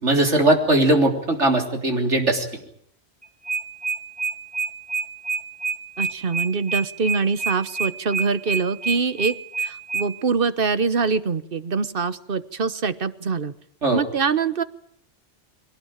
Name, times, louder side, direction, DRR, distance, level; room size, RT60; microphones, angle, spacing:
voice 1, 0.0-2.4 13.8-14.0, right 2 dB, 75° right, 3 dB, 3.9 m, -19 dB
sound 1, 3.2-10.1, right 4 dB, 5° right, 2.4 m, -26 dB
voice 2, 6.0-13.5 13.9-14.6, right 5 dB, 50° right, 14 dB, 1.3 m, -24 dB
23.5 x 18.0 x 9.0 m, 0.68 s
omnidirectional pair, 1.2 m